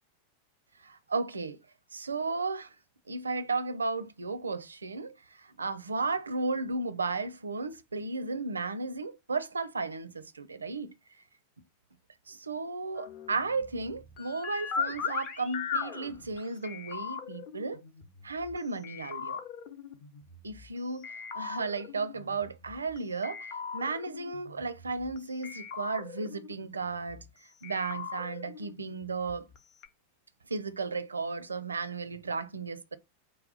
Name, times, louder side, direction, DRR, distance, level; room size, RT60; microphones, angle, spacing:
voice 1, 0.8-1.6 1.9-2.7 3.1-10.9 12.3-17.8 18.2-19.4 20.4-27.2 27.6-29.5 30.5-33.0, right 3 dB, 75° right, 0.5 m, -34 dB
sound 1, 12.9-18.6 18.8-20.7 21.0-23.0 23.2-25.2 25.4-27.3 27.6-29.6 29.8-29.9, left 6 dB, 40° left, 0.7 m, -39 dB
4.8 x 2.2 x 4.0 m
figure-of-eight pair, 90°, 0 cm